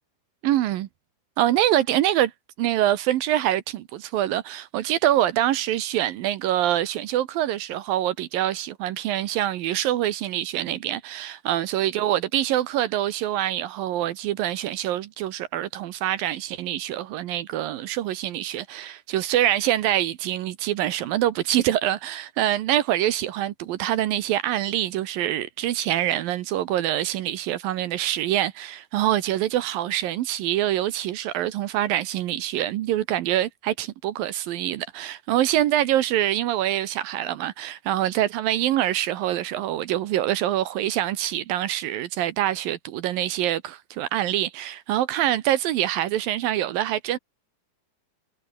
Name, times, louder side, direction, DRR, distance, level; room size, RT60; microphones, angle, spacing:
voice 1, 0.4-0.9 1.4-2.3 2.6-47.2, right 12 dB, 70° right, 2.6 m, -25 dB
omnidirectional pair, 4.5 m